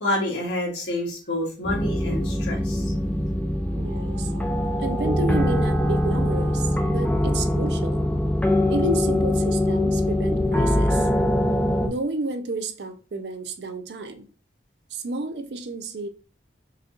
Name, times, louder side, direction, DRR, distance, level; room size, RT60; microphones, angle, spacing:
voice 1, 0.0-2.9, left 1 dB, 80° left, 1.5 m, -28 dB
sound 1, 1.6-11.9, left 1 dB, 10° left, 0.4 m, -23 dB
sound 2, 3.6-6.9, right 4 dB, 35° right, 0.7 m, -37 dB
voice 2, 3.8-4.3 4.8-8.0 8.7-11.1 11.8-14.3 14.9-16.1, right 2 dB, 65° right, 0.5 m, -31 dB
4.7 x 2.9 x 2.4 m
head